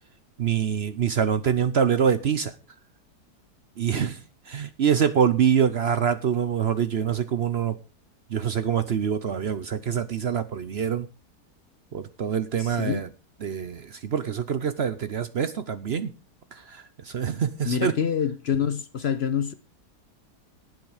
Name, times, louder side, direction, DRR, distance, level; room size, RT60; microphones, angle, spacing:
voice 1, 0.4-2.5 3.8-4.2 4.5-7.8 8.3-11.1 11.9-13.1 13.4-16.1 16.5-17.9, right 8 dB, 55° right, 0.7 m, -25 dB
voice 2, 12.6-13.0 17.6-19.5, left 7 dB, 55° left, 0.8 m, -26 dB
17.5 x 6.2 x 4.9 m
omnidirectional pair, 1.8 m